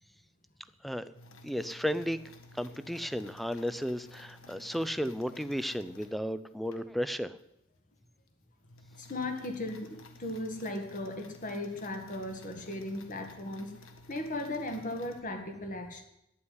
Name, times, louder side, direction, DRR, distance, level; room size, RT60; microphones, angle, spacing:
sound 1, 1.1-6.8 7.4-7.5 7.9-8.0 8.3-15.2, left 2 dB, 85° left, 1.5 m, -54 dB
voice 1, 1.4-2.2 2.6-7.4, equal, ahead, 13 dB, 0.4 m, -33 dB
voice 2, 9.0-13.7 14.1-16.0, left 1 dB, 40° left, 5 dB, 2.0 m, -37 dB
9.6 x 8.7 x 9.7 m, 0.83 s
head